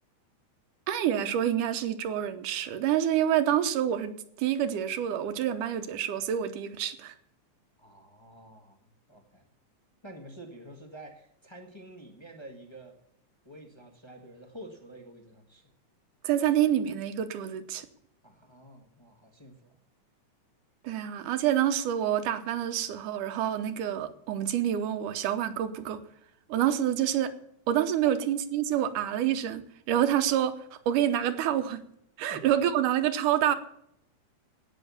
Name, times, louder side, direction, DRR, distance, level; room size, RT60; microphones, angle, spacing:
voice 1, 0.9-7.1 16.2-17.9 20.8-26.0 26.5-27.3 27.7-31.8 32.2-33.5, right 10 dB, 80° right, 10 dB, 2.5 m, -27 dB
voice 2, 7.8-9.5 10.0-12.9 13.4-15.6 18.2-19.8 32.3-32.4, right 1 dB, 20° left, 2 dB, 0.8 m, -48 dB
17.0 x 6.3 x 7.1 m, 0.73 s
omnidirectional pair, 3.6 m